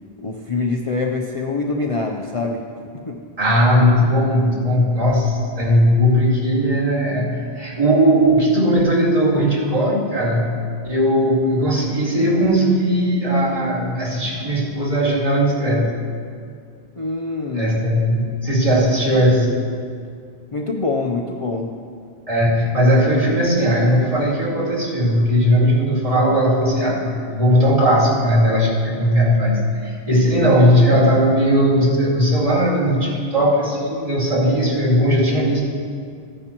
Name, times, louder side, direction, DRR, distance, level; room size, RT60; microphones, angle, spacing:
voice 1, 0.2-2.7 3.1-3.2 17.0-17.7 20.5-21.8, left 3 dB, 40° left, 0 dB, 0.6 m, -24 dB
voice 2, 3.4-10.5 10.8-16.0 17.5-19.5 22.3-35.6, equal, 35° right, -6 dB, 2.3 m, -18 dB
15.5 x 9.8 x 3.0 m, 2.2 s
omnidirectional pair, 1.1 m